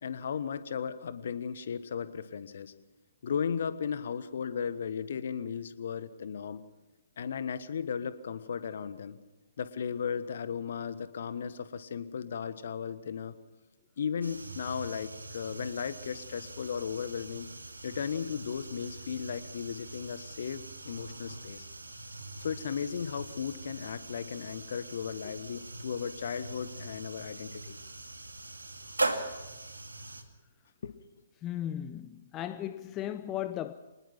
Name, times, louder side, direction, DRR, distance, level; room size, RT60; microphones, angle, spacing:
voice 1, 0.0-2.7 3.2-6.6 7.2-9.2 9.6-13.4 14.0-17.5 17.8-21.7 22.4-27.8 30.8-30.9, left 7 dB, 50° left, 1.3 m, -36 dB
sound 1, 14.2-30.2, right 2 dB, 75° right, 2.2 m, -41 dB
voice 2, 31.4-33.7, left 11 dB, 20° left, 0.6 m, -36 dB
25.0 x 20.0 x 5.8 m
figure-of-eight pair, 125°, 0 cm